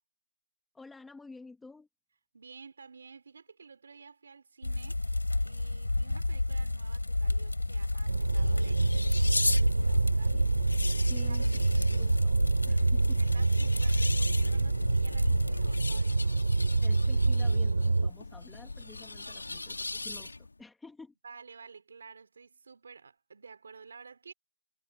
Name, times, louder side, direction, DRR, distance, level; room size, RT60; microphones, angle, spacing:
voice 1, 0.7-1.9 10.3-10.4 11.1-13.3 16.8-21.1, left 3 dB, ahead, 1.5 m, -51 dB
voice 2, 2.3-5.0 5.4-8.9 9.4-10.4 11.1-11.5 13.2-16.5 21.2-24.3, right 5 dB, 25° right, 4.3 m, -52 dB
sound 1, 4.6-15.8, left 2 dB, 80° left, 3.3 m, -32 dB
sound 2, 7.9-20.6, left 3 dB, 55° left, 1.9 m, -39 dB
sound 3, 8.1-18.1, right 3 dB, 50° right, 2.6 m, -26 dB
figure-of-eight pair, 180°, 0 cm